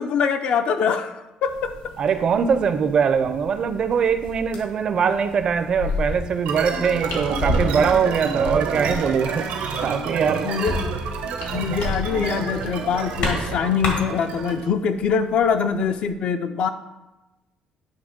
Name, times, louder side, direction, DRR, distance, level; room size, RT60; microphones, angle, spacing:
voice 1, 0.0-1.9 10.4-10.7 11.5-16.7, left 6 dB, 55° left, 8 dB, 0.4 m, -23 dB
sound 1, 1.4-16.1, left 3 dB, 75° left, 1.6 m, -36 dB
voice 2, 2.0-9.5 9.8-10.5, right 6 dB, 35° right, 9 dB, 0.5 m, -22 dB
sound 2, 5.8-13.5, left 1 dB, 90° left, 2.0 m, -32 dB
sound 3, 6.4-14.7, right 6 dB, 80° right, 0.8 m, -29 dB
9.9 x 3.3 x 5.1 m, 1.0 s
cardioid pair, 175°, 2 cm